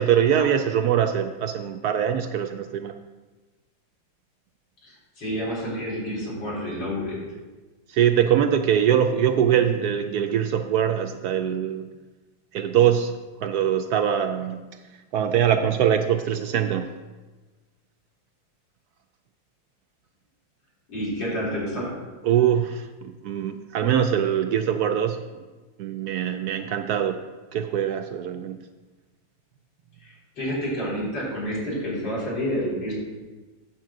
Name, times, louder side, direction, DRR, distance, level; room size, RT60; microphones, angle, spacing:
voice 1, 0.0-3.0 7.9-11.9 12.5-13.1 13.4-14.6 15.1-16.9 22.2-25.2 25.8-27.2 27.5-28.6, right 9 dB, 75° right, 7 dB, 0.9 m, -23 dB
voice 2, 4.8-7.2 20.9-22.0 30.0-32.9, equal, 75° left, -5 dB, 4.6 m, -29 dB
8.9 x 5.3 x 7.5 m, 1.3 s
omnidirectional pair, 2.0 m